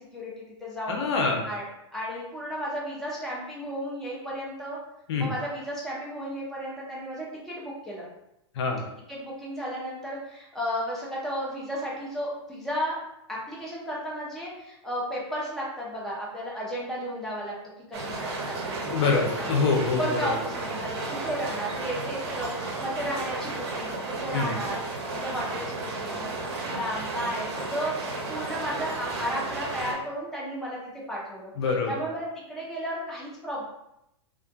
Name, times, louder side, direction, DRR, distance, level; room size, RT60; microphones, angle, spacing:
voice 1, 0.1-1.0 1.5-1.7 1.9-4.8 5.2-8.1 9.1-13.0 13.3-17.5 17.9-19.6 20.0-24.8 25.1-26.3 26.6-27.9 28.3-30.8 31.1-31.5 31.9-33.6, equal, 5° left, -5 dB, 0.7 m, -33 dB
voice 2, 0.9-1.5 5.1-5.3 8.5-8.9 18.8-20.3 24.3-24.5 31.6-32.0, left 4 dB, 70° left, 2 dB, 0.5 m, -25 dB
sound 1, 17.9-29.9, right 3 dB, 65° right, 0.7 m, -33 dB
2.5 x 2.4 x 2.3 m, 0.83 s
hypercardioid pair, 125°, 15 cm